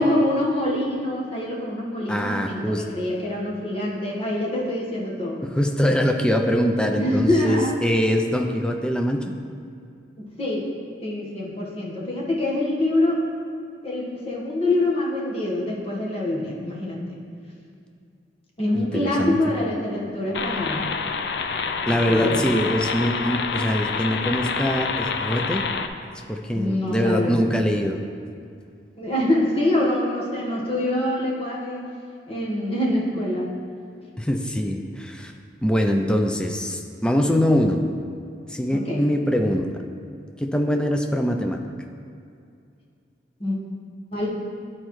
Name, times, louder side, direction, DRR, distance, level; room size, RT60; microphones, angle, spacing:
voice 1, 0.0-5.4 6.9-7.7 10.2-10.6 11.0-13.2 13.8-17.2 18.6-20.9 21.9-22.4 26.5-27.4 29.0-31.8 32.3-33.5 38.7-39.1 43.4-43.6 44.1-44.3, left 1 dB, 35° left, -4 dB, 1.3 m, -25 dB
voice 2, 2.1-2.8 5.4-9.3 18.7-19.4 21.9-25.7 26.3-28.0 34.2-35.3 35.6-37.8 38.5-39.7 40.4-41.6, equal, 5° left, 3 dB, 0.4 m, -23 dB
sound 1, 20.3-25.9, left 5 dB, 70° left, 0.4 m, -27 dB
11.5 x 4.3 x 3.1 m, 2.4 s
head